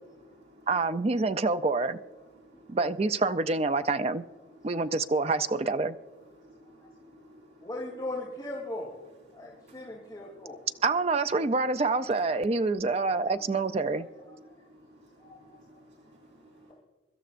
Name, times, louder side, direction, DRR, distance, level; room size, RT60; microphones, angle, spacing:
voice 1, 0.1-0.7 2.4-2.8 4.6-4.7 6.4-7.7 9.3-10.7 14.5-16.7, equal, 75° right, 3.7 m, -56 dB
voice 2, 0.7-2.0 2.7-4.3 4.6-6.0 10.8-14.1, right 3 dB, 30° right, 0.4 m, -27 dB
voice 3, 7.6-8.9 9.3-10.6 15.2-15.4, left 2 dB, 20° left, 2.8 m, -38 dB
24.0 x 12.5 x 2.5 m
head